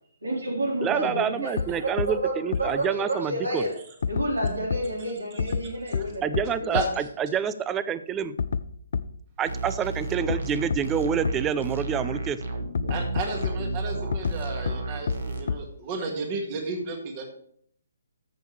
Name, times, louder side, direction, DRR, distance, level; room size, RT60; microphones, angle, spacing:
voice 1, 0.2-3.7 4.1-6.8, right 1 dB, 85° right, 0 dB, 3.8 m, -30 dB
voice 2, 0.8-3.7 6.2-8.4 9.4-12.4, right 8 dB, 15° right, 14 dB, 0.5 m, -27 dB
sound 1, 1.6-1.7 2.0-2.1 2.5-2.6 4.0-4.8 5.4-5.6 5.9-6.0 6.3-6.4 6.8-6.9 8.4-8.6 8.9-9.0 10.3-10.4 10.7-10.8 11.3-11.4 12.8-13.5 14.1-14.4 14.7-14.8 15.1-15.2 15.5-15.6, left 6 dB, 60° left, 0.5 m, -26 dB
voice 3, 6.7-7.0 12.9-17.3, right 3 dB, 30° right, 3 dB, 1.9 m, -32 dB
sound 2, 9.5-15.4, right 2 dB, 70° right, 1.6 m, -32 dB
14.0 x 6.3 x 3.3 m, 0.63 s
figure-of-eight pair, 140°, 0 cm